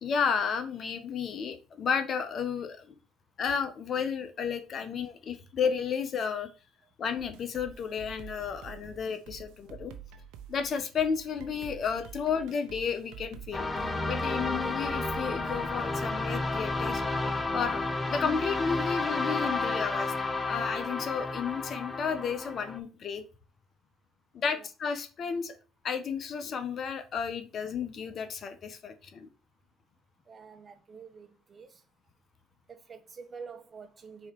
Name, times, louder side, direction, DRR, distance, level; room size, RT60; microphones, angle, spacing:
voice 1, 0.0-2.9 3.4-6.5 7.0-9.9 10.5-13.7 14.0-17.8 18.1-20.1 20.5-23.2 24.3-25.5 25.8-29.3, left 6 dB, 55° left, 1.1 m, -32 dB
sound 1, 7.2-15.7, right 8 dB, 80° right, 0.8 m, -48 dB
sound 2, 13.5-22.8, left 3 dB, 20° left, 0.9 m, -31 dB
voice 2, 30.3-31.8 32.7-34.3, right 5 dB, 40° right, 1.3 m, -47 dB
4.8 x 4.3 x 5.4 m
supercardioid pair, 75°, 0 cm